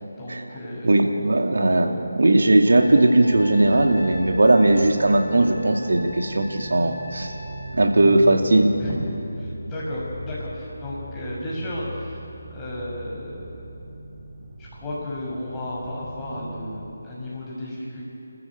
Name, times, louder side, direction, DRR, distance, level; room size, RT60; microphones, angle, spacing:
voice 1, 0.2-1.0 3.7-3.8 8.8-12.2 12.5-13.6 14.6-18.0, left 1 dB, 15° left, -6 dB, 6.2 m, -33 dB
voice 2, 0.8-7.3 7.7-8.7, right 2 dB, 65° right, 4 dB, 2.3 m, -18 dB
Trumpet, 2.7-7.7, left 1 dB, 55° left, 6.0 m, -41 dB
sound 1, 3.3-16.9, right 1 dB, 20° right, 5.4 m, -38 dB
29.5 x 14.5 x 8.5 m, 3.0 s
figure-of-eight pair, 155°, 0 cm